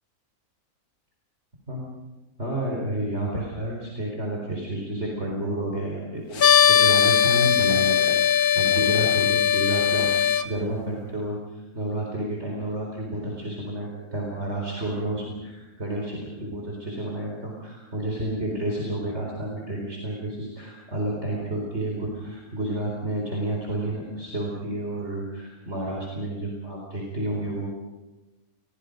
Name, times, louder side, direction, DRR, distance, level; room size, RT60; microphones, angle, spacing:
voice 1, 2.4-27.7, right 1 dB, 45° right, -2 dB, 4.6 m, -30 dB
sound 1, 6.4-10.4, left 8 dB, 85° left, 1.8 m, -19 dB
29.5 x 22.5 x 5.2 m, 1.1 s
omnidirectional pair, 1.5 m